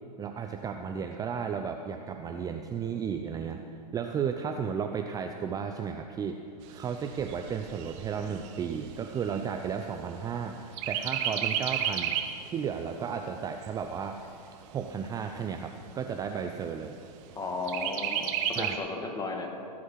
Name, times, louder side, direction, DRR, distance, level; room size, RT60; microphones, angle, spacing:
voice 1, 0.2-3.6 3.9-6.4 6.7-12.1 12.4-14.2 14.7-17.0 18.6-18.8, right 7 dB, 15° right, 5 dB, 0.5 m, -34 dB
Chirp tweet, 6.6-10.4 10.8-12.4 12.9-13.0 13.3-14.3 14.9-15.0 15.3-15.4 15.9-16.4 17.7-18.7, right 9 dB, 45° right, 1.1 m, -33 dB
voice 2, 17.3-18.3 18.6-19.5, left 3 dB, 15° left, 2 dB, 1.9 m, -34 dB
17.5 x 8.6 x 5.7 m, 2.6 s
hypercardioid pair, 110°, 21 cm